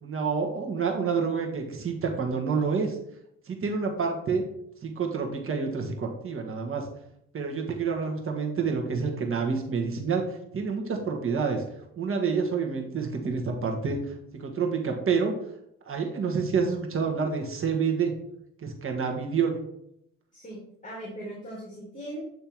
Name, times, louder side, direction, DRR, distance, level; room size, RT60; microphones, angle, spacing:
voice 1, 0.0-3.0 3.5-4.5 4.8-6.9 7.3-11.6 12.0-15.4 15.8-18.1 18.6-19.5, right 5 dB, 40° right, 2 dB, 1.5 m, -28 dB
voice 2, 20.3-22.2, right 1 dB, 20° left, -5 dB, 2.8 m, -39 dB
8.7 x 3.4 x 4.6 m, 0.74 s
supercardioid pair, 90°, 34 cm